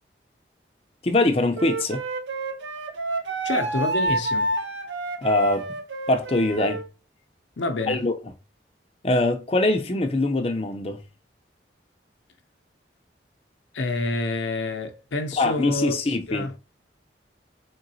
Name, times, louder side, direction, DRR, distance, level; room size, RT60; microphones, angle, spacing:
voice 1, 1.0-2.0 5.2-5.8 6.1-6.8 7.9-8.2 9.0-11.0 15.4-16.5, left 2 dB, 30° left, 0.5 m, -23 dB
Wind instrument woodwind instrument, 1.6-6.9, right 2 dB, 75° right, 0.6 m, -28 dB
voice 2, 3.4-4.5 7.6-8.0 13.7-15.9 16.3-16.5, left 2 dB, 80° left, 0.6 m, -27 dB
3.8 x 3.8 x 2.7 m
head